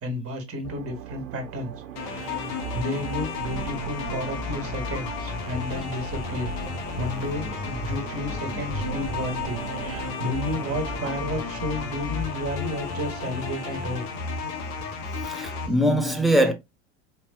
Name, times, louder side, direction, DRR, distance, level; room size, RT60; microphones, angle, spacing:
voice 1, 0.0-6.6 7.0-14.1 15.6-15.7, left 1 dB, 35° right, 1.6 m, -32 dB
sound 1, 0.6-14.0, right 9 dB, 65° right, 1.3 m, -39 dB
sound 2, 2.0-15.7, left 5 dB, 55° left, 1.2 m, -33 dB
voice 2, 15.2-16.5, equal, ahead, 1.0 m, -22 dB
4.3 x 3.2 x 2.3 m
hypercardioid pair, 75°, 40 cm